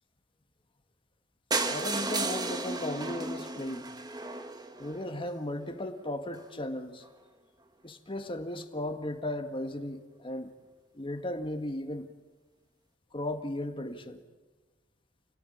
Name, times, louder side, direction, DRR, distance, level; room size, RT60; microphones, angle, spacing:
sound 1, 1.5-5.4 6.0-6.1 6.4-6.5 6.8-6.9 7.0-7.1, right 3 dB, 20° right, 1.6 m, -34 dB
voice 1, 1.6-3.9 4.8-7.0 7.8-10.5 11.0-12.1 13.1-14.2, left 1 dB, 30° left, 1.7 m, -36 dB
29.0 x 18.0 x 10.0 m
head